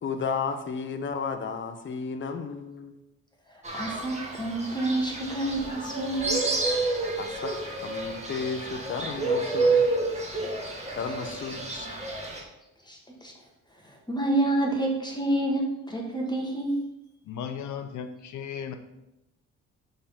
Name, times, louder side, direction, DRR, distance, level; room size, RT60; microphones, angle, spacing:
voice 1, 0.0-2.9 7.2-7.5 7.8-9.8 10.9-11.9, left 5 dB, 40° left, 8 dB, 0.8 m, -33 dB
voice 2, 3.5-6.4 12.9-13.3 13.8-16.8, right 1 dB, 15° left, 0 dB, 1.6 m, -28 dB
Fowl, 3.6-12.4, right 3 dB, 20° right, 1.9 m, -29 dB
voice 3, 17.3-18.7, left 7 dB, 75° left, 8 dB, 0.8 m, -36 dB
6.6 x 3.9 x 5.8 m, 0.90 s
cardioid pair, 90°, 30 cm